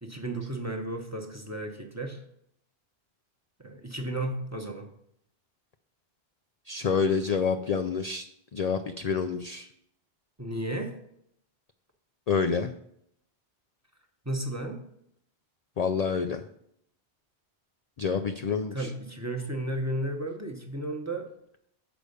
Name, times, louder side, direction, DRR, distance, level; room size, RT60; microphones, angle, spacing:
voice 1, 0.0-2.2 3.6-4.9 10.4-10.9 14.2-14.8 18.7-21.3, right 1 dB, 15° right, 2 dB, 0.9 m, -33 dB
voice 2, 6.7-8.2 8.5-9.7 12.3-12.7 15.8-16.4 18.0-18.9, left 5 dB, 55° left, 7 dB, 0.4 m, -28 dB
7.0 x 4.9 x 6.5 m, 0.72 s
omnidirectional pair, 1.1 m